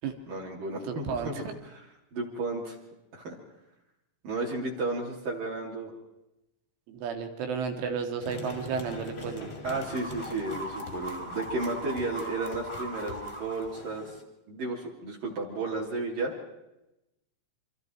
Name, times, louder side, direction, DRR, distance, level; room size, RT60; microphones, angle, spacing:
voice 1, 0.3-1.4 1.7-1.8 2.1-2.8 3.1-3.4 4.2-5.9 9.6-14.2 14.5-16.3, right 2 dB, 45° right, -2 dB, 4.3 m, -33 dB
voice 2, 0.9-1.5 6.9-9.5, right 6 dB, 70° right, 5 dB, 4.7 m, -33 dB
sound 1, 8.2-14.2, equal, 30° left, 1.2 m, -39 dB
28.5 x 26.0 x 4.7 m, 0.91 s
omnidirectional pair, 5.9 m